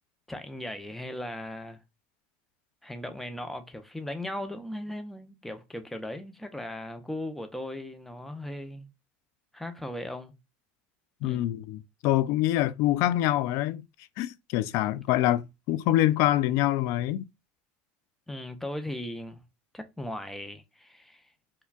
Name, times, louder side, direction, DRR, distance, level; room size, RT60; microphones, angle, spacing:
voice 1, 0.3-1.8 2.8-8.9 9.5-10.3 11.2-11.5 18.3-19.4 19.7-21.3, left 1 dB, 5° left, 0.5 m, -38 dB
voice 2, 11.2-13.8 14.2-15.4 15.7-17.2, left 14 dB, 60° left, 0.3 m, -25 dB
4.5 x 2.2 x 2.3 m
supercardioid pair, 120°, 6 cm